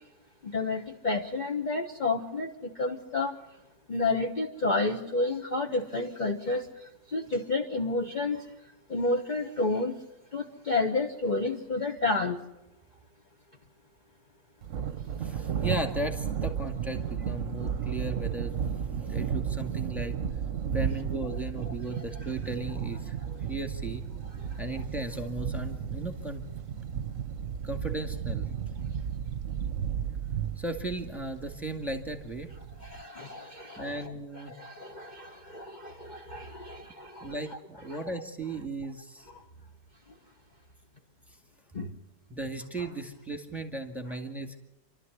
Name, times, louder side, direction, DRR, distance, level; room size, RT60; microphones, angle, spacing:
voice 1, 0.4-3.4 3.9-8.4 8.9-10.0 10.3-12.4 21.9-22.0 23.2-23.4 24.4-24.5 32.8-37.6 37.9-38.0 41.7-41.9, left 3 dB, 30° left, 1 dB, 1.3 m, -31 dB
Thunder, 14.6-33.0, right 8 dB, 55° right, 1.2 m, -34 dB
voice 2, 15.2-20.1 20.7-23.2 23.5-24.0 24.6-26.5 27.6-28.5 30.6-32.5 33.8-34.5 37.2-39.3 42.3-44.6, right 2 dB, ahead, 4 dB, 2.0 m, -36 dB
29.0 x 12.5 x 8.2 m, 0.96 s
omnidirectional pair, 1.8 m